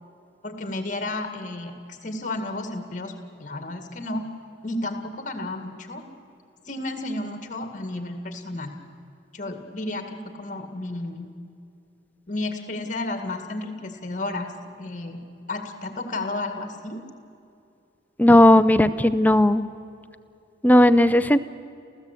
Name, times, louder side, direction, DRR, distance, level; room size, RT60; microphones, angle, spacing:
voice 1, 0.4-3.1 3.4-4.3 4.6-6.0 6.7-8.7 9.3-11.3 12.3-15.2 15.5-17.0, left 2 dB, 45° left, 6 dB, 2.1 m, -32 dB
voice 2, 18.2-19.6 20.6-21.4, left 1 dB, 10° left, 12 dB, 0.5 m, -16 dB
28.0 x 15.0 x 8.4 m, 2.6 s
head